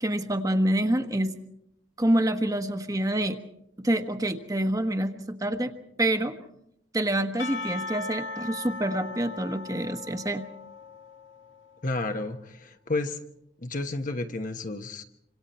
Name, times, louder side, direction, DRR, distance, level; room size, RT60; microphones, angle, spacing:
voice 1, 0.0-1.3 2.0-3.4 3.8-5.7 6.0-6.4 6.9-10.4, right 1 dB, 20° right, 7 dB, 1.4 m, -27 dB
Percussion / Church bell, 7.4-11.8, left 3 dB, 80° left, 1.7 m, -38 dB
voice 2, 11.8-13.2 13.6-15.0, left 2 dB, 45° left, 5 dB, 1.2 m, -31 dB
26.5 x 26.5 x 4.3 m, 0.75 s
head